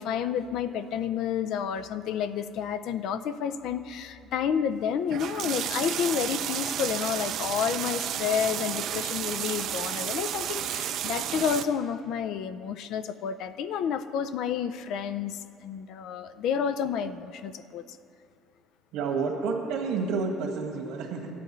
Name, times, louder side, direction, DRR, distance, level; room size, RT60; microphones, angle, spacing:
voice 1, 0.0-17.8, left 8 dB, 60° left, 12 dB, 0.4 m, -30 dB
sound 1, 5.1-11.6, right 10 dB, 55° right, 0.5 m, -32 dB
voice 2, 18.9-21.3, right 4 dB, 85° right, 1 dB, 1.7 m, -29 dB
15.5 x 10.5 x 3.1 m, 2.5 s
cardioid pair, 145°, 0 cm